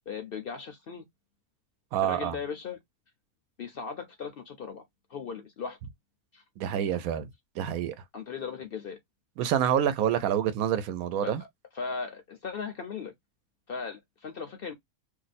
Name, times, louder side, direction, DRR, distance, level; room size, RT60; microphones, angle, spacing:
voice 1, 0.1-1.0 2.0-2.8 3.6-4.8 5.1-5.8 6.3-6.4 8.1-9.0 11.2-11.4 11.7-13.1 13.7-14.7, left 5 dB, 55° left, 0.7 m, -37 dB
voice 2, 1.9-2.4 6.6-7.3 7.6-7.9 9.4-11.4, right 10 dB, 85° right, 1.0 m, -27 dB
2.7 x 2.1 x 4.0 m
omnidirectional pair, 1.5 m